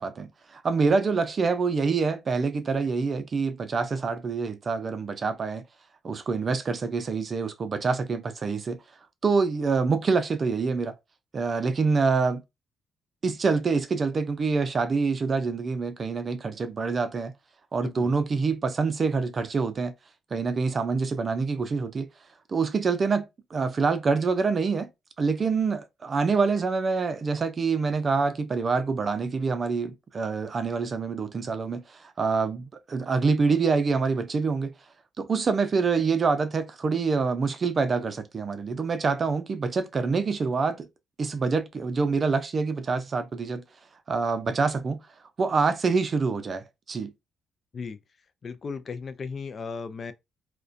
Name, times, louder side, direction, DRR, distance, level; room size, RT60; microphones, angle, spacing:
voice 1, 0.0-5.6 6.0-8.8 9.2-10.9 11.3-12.4 13.2-17.3 17.7-19.9 20.3-22.1 22.5-24.9 25.2-34.7 35.2-40.9 41.2-43.6 44.1-45.0 45.4-47.1, right 4 dB, 40° right, 0.4 m, -26 dB
voice 2, 48.4-50.1, left 5 dB, 45° left, 0.3 m, -36 dB
2.4 x 2.1 x 2.4 m
cardioid pair, 90°, 0 cm